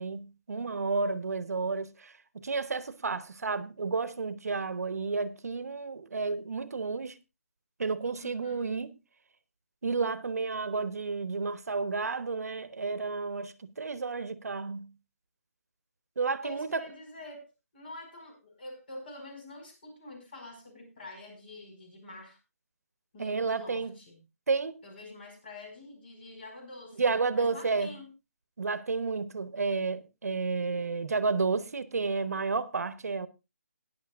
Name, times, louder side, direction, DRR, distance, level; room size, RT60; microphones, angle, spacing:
voice 1, 0.0-7.2 7.8-8.9 9.8-14.9 16.2-16.8 23.2-23.9 24.5-24.8 27.0-27.9 28.6-33.3, right 4 dB, 80° right, 1.2 m, -31 dB
voice 2, 8.2-8.7 16.4-17.5 17.7-22.4 23.1-24.2 24.8-28.1, left 2 dB, 40° left, 4.9 m, -46 dB
17.5 x 10.5 x 2.5 m
hypercardioid pair, 175°, 8 cm